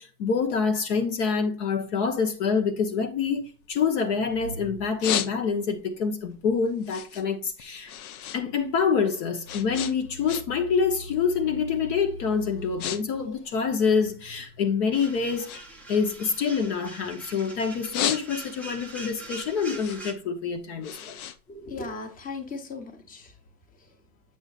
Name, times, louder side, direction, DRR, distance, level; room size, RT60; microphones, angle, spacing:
voice 1, 0.0-7.9 8.3-15.6 15.9-21.2, left 5 dB, 50° left, 1.0 m, -26 dB
sound 1, 3.3-4.4 4.7-5.8 6.2-8.4 8.7-10.7 11.0-11.4 12.0-12.1 12.5-13.0 13.2-14.5 15.0-17.3 17.7-18.7 19.1-22.3, left 10 dB, 80° left, 0.9 m, -34 dB
sound 2, 14.9-20.1, right 2 dB, 5° left, 0.4 m, -43 dB
voice 2, 21.5-23.4 23.7-24.0, left 3 dB, 20° left, 1.2 m, -38 dB
7.9 x 6.6 x 2.5 m
supercardioid pair, 155°, 43 cm